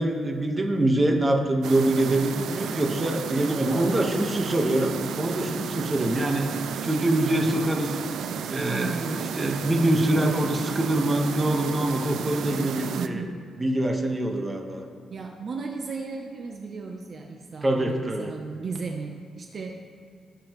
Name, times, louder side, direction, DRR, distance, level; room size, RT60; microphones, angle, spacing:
voice 1, 0.0-6.5 6.8-7.9 8.5-13.2 13.6-14.8 17.6-18.3, right 1 dB, 20° right, 2 dB, 1.3 m, -24 dB
sound 1, 1.6-13.1, right 7 dB, 85° right, 0.5 m, -33 dB
voice 2, 3.7-4.2 8.7-9.4 13.0-13.4 15.1-19.8, right 4 dB, 45° right, 3 dB, 0.7 m, -35 dB
17.5 x 7.0 x 3.1 m, 2.4 s
cardioid pair, 120°, 0 cm